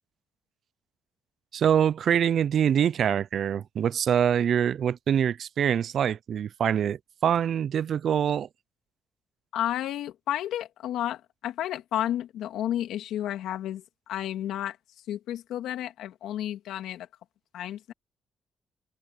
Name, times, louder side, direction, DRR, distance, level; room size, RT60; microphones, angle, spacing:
voice 1, 1.5-8.5, right 8 dB, 60° right, 0.4 m, -24 dB
voice 2, 9.5-14.8 15.1-17.1 17.5-17.9, left 12 dB, 85° left, 2.6 m, -32 dB
cardioid pair, 90°, 0 cm